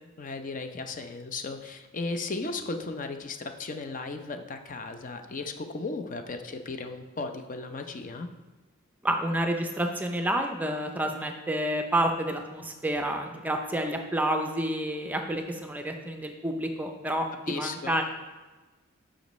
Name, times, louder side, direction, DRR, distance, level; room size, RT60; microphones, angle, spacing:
voice 1, 0.2-8.3 17.5-17.9, left 3 dB, 40° left, 6 dB, 0.6 m, -35 dB
voice 2, 9.0-18.0, right 1 dB, 10° right, 4 dB, 0.5 m, -29 dB
12.0 x 5.1 x 3.1 m, 1.2 s
head